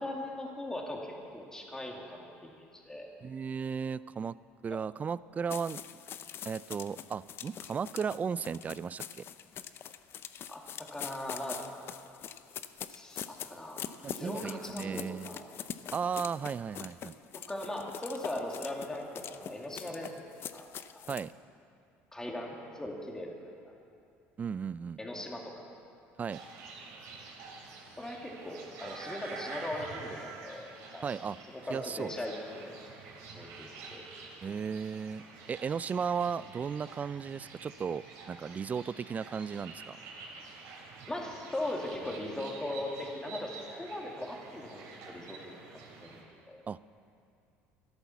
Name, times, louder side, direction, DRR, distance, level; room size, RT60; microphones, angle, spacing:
voice 1, 0.0-3.1 10.5-11.6 12.9-13.8 14.1-15.5 17.5-20.1 20.5-20.7 21.0-21.1 22.1-23.7 25.0-25.7 28.0-30.7 30.9-31.1 31.5-32.7 33.3-34.0 34.4-34.5 41.1-45.4 45.7-46.6, left 1 dB, 10° left, 0 dB, 2.3 m, -39 dB
voice 2, 3.2-4.4 4.6-6.0 6.4-9.2 14.0-15.4 15.9-17.2 21.1-21.3 24.4-25.0 26.2-26.4 31.0-31.4 31.7-32.1 34.4-40.0 46.7-46.8, right 6 dB, 30° right, 19 dB, 0.3 m, -35 dB
sound 1, 5.5-21.3, left 9 dB, 50° left, 0.6 m, -43 dB
sound 2, 26.3-46.2, right 4 dB, 75° right, 3.0 m, -48 dB
14.0 x 11.0 x 7.0 m, 2.6 s
supercardioid pair, 95°, 5 cm